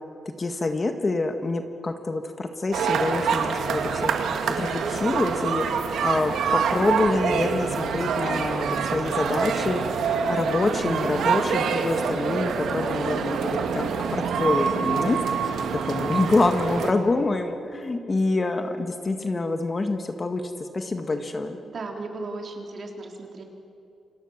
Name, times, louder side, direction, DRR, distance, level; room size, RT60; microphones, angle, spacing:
voice 1, 0.4-4.1 4.5-5.7 6.0-9.8 10.3-15.5 15.8-21.6, left 2 dB, 25° left, 6 dB, 1.6 m, -26 dB
sound 1, 2.7-16.9, right 6 dB, 85° right, 2.5 m, -26 dB
voice 2, 21.6-23.4, right 3 dB, 40° right, 2 dB, 4.0 m, -36 dB
29.5 x 26.5 x 7.4 m, 2.7 s
wide cardioid pair, 155°, 0 cm